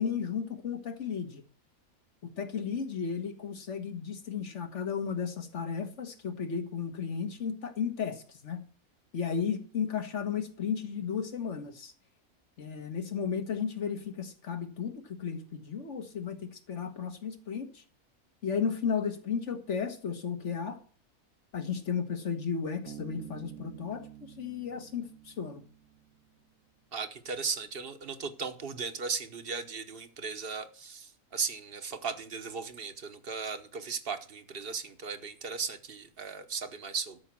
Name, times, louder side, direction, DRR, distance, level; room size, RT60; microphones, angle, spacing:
voice 1, 0.0-1.4 2.2-8.6 9.1-11.9 12.6-17.8 18.4-20.8 21.5-25.6, left 6 dB, 55° left, 1.7 m, -34 dB
Bass guitar, 22.9-26.3, right 11 dB, 85° right, 1.7 m, -49 dB
voice 2, 26.9-37.2, right 5 dB, 45° right, 1.1 m, -37 dB
13.0 x 5.8 x 7.4 m
omnidirectional pair, 1.5 m